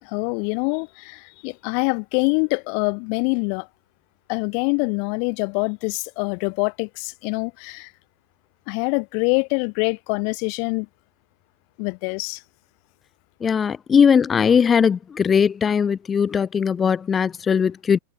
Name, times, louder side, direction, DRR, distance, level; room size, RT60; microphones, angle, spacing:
voice 1, 0.0-3.7 4.3-7.9 8.7-10.9 11.8-12.4, left 40 dB or more, 45° left, 4.4 m, -25 dB
voice 2, 13.4-18.0, left 7 dB, 20° left, 3.1 m, -19 dB
figure-of-eight pair, 90°, 0 cm